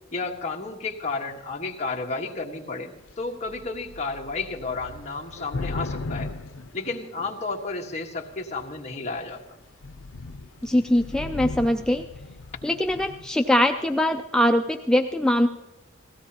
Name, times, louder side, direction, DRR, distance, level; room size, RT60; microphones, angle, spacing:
voice 1, 0.1-6.3 6.7-9.6, left 3 dB, 35° left, 0 dB, 1.4 m, -32 dB
Thunder / Rain, 3.1-3.2 3.5-7.6 8.3-8.8 9.2-9.3 9.6-13.4, left 3 dB, 90° left, 0.5 m, -37 dB
voice 2, 10.6-12.0 12.6-15.5, left 1 dB, 5° left, 5 dB, 0.4 m, -22 dB
17.5 x 16.0 x 2.9 m, 1.1 s
head